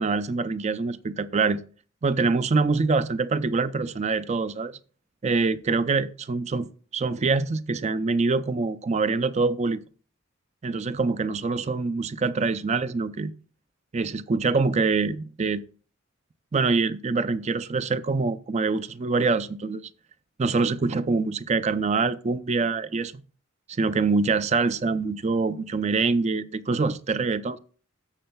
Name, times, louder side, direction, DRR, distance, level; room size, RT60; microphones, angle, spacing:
voice 1, 0.0-1.6 2.0-4.8 5.2-6.7 6.9-9.8 10.6-13.3 13.9-15.6 16.5-19.9 20.4-23.2 23.8-27.6, right 4 dB, 35° right, 0.4 m, -25 dB
13.0 x 7.7 x 2.3 m
head